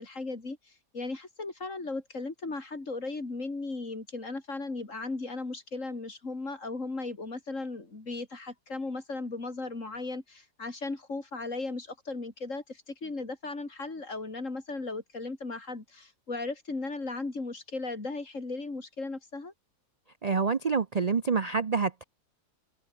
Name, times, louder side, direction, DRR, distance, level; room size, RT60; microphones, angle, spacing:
voice 1, 0.0-19.5, left 3 dB, 50° left, 3.9 m, -36 dB
voice 2, 20.2-22.0, right 5 dB, 45° right, 0.5 m, -27 dB
omnidirectional pair, 1.7 m